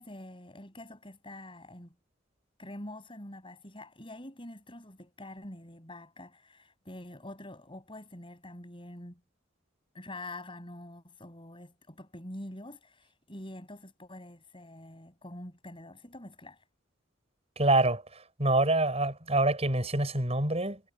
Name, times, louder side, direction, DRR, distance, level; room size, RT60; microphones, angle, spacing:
voice 1, 0.0-1.9 2.6-9.2 9.9-16.6, left 1 dB, 25° left, 7.9 m, -46 dB
voice 2, 17.6-18.0 18.4-20.8, right 2 dB, 30° right, 7.8 m, -26 dB
head